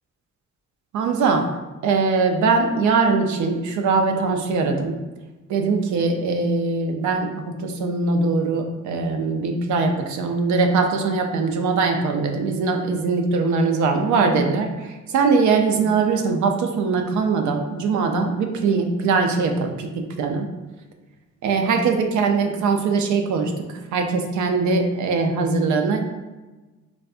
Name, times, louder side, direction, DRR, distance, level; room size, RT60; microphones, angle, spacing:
voice 1, 0.9-1.5 1.8-4.9 5.5-20.5 21.4-23.5 23.9-26.0, right 4 dB, 70° right, 4 dB, 0.5 m, -21 dB
4.1 x 2.3 x 2.4 m, 1.2 s
cardioid pair, 90°, 30 cm